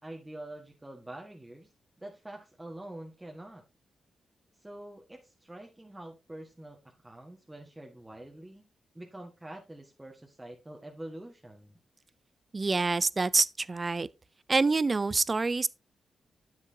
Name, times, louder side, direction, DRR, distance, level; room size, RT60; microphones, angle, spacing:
voice 1, 0.0-1.7 2.0-3.6 4.6-8.6 8.9-11.8, right 1 dB, 15° right, 1.6 m, -46 dB
voice 2, 12.5-14.1 14.5-15.7, right 3 dB, 40° right, 0.5 m, -26 dB
10.0 x 7.2 x 2.8 m
supercardioid pair, 45°, 0 cm